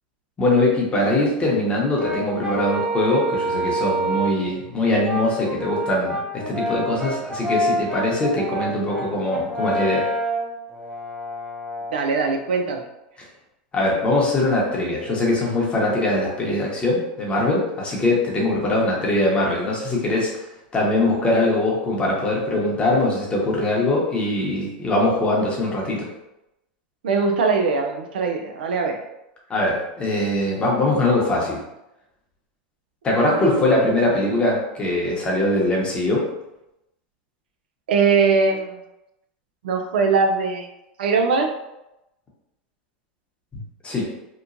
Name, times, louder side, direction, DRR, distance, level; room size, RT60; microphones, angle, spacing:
voice 1, 0.4-10.0 13.7-20.3 20.7-26.1 29.5-31.6 33.0-36.2 43.8-44.1, left 2 dB, 20° left, -3 dB, 0.9 m, -22 dB
Brass instrument, 1.9-4.5 5.0-12.0, right 1 dB, 15° right, 0.6 m, -27 dB
voice 2, 11.9-12.9 27.0-29.0 33.5-33.6 37.9-38.8 39.6-40.7 41.0-41.5, right 4 dB, 85° right, 3 dB, 0.4 m, -21 dB
3.0 x 2.1 x 2.5 m, 0.90 s
supercardioid pair, 115°, 5 cm